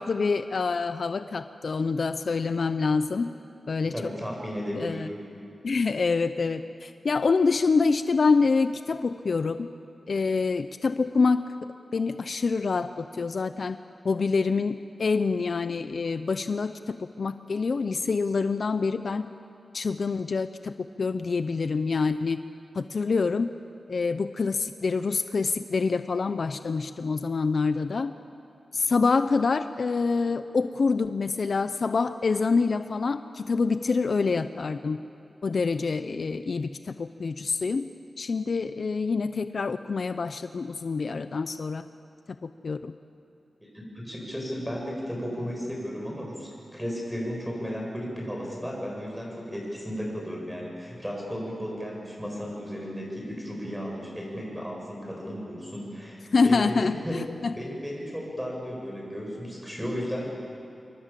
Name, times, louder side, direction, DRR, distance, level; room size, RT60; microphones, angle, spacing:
voice 1, 0.0-3.3 3.7-3.9 4.7-5.1 5.6-9.7 10.1-11.4 11.9-13.8 14.0-19.3 19.7-22.4 22.7-23.5 23.9-28.1 28.7-35.0 35.4-37.9 38.2-41.9 42.4-42.9 56.3-57.5, left 4 dB, 60° left, 10 dB, 0.7 m, -26 dB
voice 2, 3.8-5.1 43.7-57.1 57.5-60.3, equal, 5° right, -2 dB, 7.9 m, -34 dB
27.0 x 24.0 x 7.6 m, 2.7 s
wide cardioid pair, 105°, 0 cm